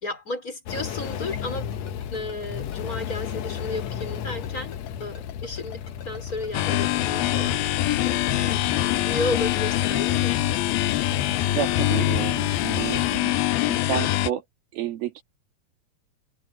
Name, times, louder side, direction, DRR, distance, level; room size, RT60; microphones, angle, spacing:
voice 1, 0.0-1.7 2.1-10.4, left 2 dB, 20° left, 4.8 m, -33 dB
sound 1, 0.7-13.2, left 9 dB, 70° left, 1.7 m, -34 dB
Ringtone, 1.1-7.9, left 6 dB, 45° left, 4.3 m, -47 dB
sound 2, 6.5-14.3, left 14 dB, 85° left, 2.8 m, -24 dB
voice 2, 11.6-13.4 13.7-14.4 14.7-15.2, right 10 dB, 75° right, 4.1 m, -30 dB
omnidirectional pair, 4.3 m